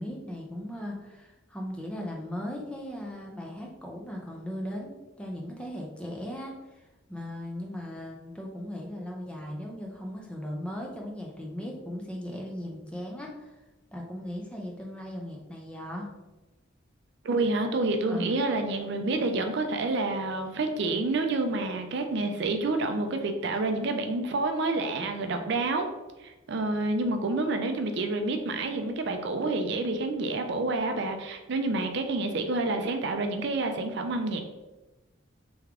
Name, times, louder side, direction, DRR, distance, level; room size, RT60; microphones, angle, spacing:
voice 1, 0.0-13.6 13.9-16.1 18.1-18.4, equal, 5° left, 0 dB, 0.5 m, -38 dB
voice 2, 17.2-25.9 26.2-34.4, right 2 dB, 60° right, 6 dB, 0.4 m, -28 dB
3.4 x 3.3 x 3.6 m, 1.1 s
head